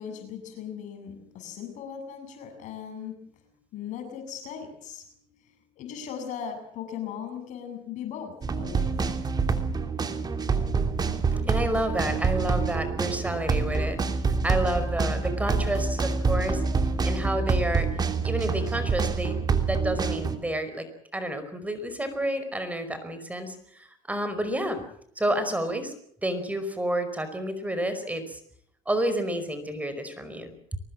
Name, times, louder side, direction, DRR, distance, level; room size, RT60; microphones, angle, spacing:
voice 1, 0.0-3.2 3.7-5.1 5.3-9.0, left 8 dB, 60° left, 6 dB, 7.5 m, -38 dB
sound 1, 8.4-20.4, right 4 dB, 30° right, 3.1 m, -26 dB
voice 2, 11.4-14.0 14.4-16.6 17.0-17.9 18.2-19.4 19.7-20.9 21.1-24.8 25.1-25.9 26.2-28.4 28.8-30.8, right 1 dB, 10° right, 10 dB, 5.1 m, -30 dB
24.0 x 19.5 x 7.5 m, 0.65 s
supercardioid pair, 95°, 14 cm